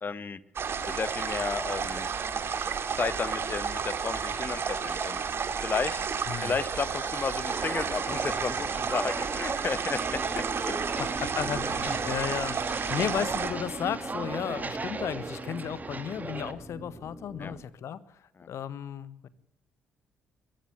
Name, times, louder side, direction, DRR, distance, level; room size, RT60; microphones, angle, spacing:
voice 1, 0.0-0.4 0.8-2.1 2.9-5.2 5.6-6.1 6.4-10.7 11.2-11.3 11.8-12.0 17.4-17.5 18.4-18.5, left 5 dB, 35° left, 15 dB, 1.5 m, -33 dB
sound 1, 0.6-13.5, right 6 dB, 45° right, 2.6 m, -32 dB
Walk footsteps, 7.5-16.5, right 3 dB, 30° right, 2.4 m, -37 dB
sound 2, 9.9-17.6, right 1 dB, ahead, 3.9 m, -43 dB
voice 2, 11.0-19.3, left 9 dB, 55° left, 16 dB, 1.5 m, -34 dB
23.5 x 15.0 x 8.0 m, 0.76 s
figure-of-eight pair, 45°, 6 cm